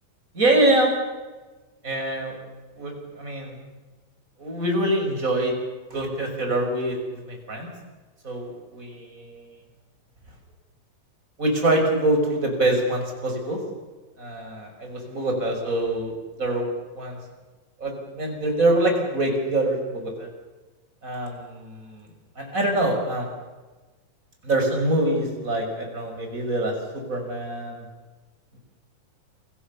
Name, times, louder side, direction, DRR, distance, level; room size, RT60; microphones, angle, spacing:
voice 1, 0.3-0.9 1.8-2.4 2.8-3.6 4.4-5.6 5.9-7.7 8.2-9.6 11.4-13.6 14.2-17.2 17.8-20.3 21.0-23.3 24.4-27.8, right 1 dB, 20° right, 2 dB, 6.0 m, -25 dB
28.5 x 22.5 x 7.1 m, 1.3 s
omnidirectional pair, 4.0 m